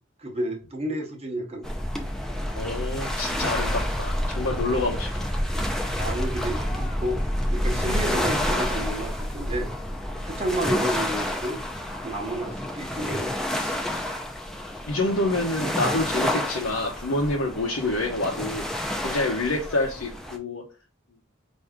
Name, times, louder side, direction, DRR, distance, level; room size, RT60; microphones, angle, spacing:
voice 1, 0.2-1.9 5.9-9.7 10.2-11.6 12.0-13.8, right 1 dB, 30° right, 0.9 m, -31 dB
sound 1, 1.6-20.4, left 1 dB, ahead, 0.6 m, -29 dB
voice 2, 2.5-5.3 7.7-7.8 14.9-18.7 19.0-20.6, left 2 dB, 85° left, 0.8 m, -27 dB
4.6 x 2.7 x 3.5 m
head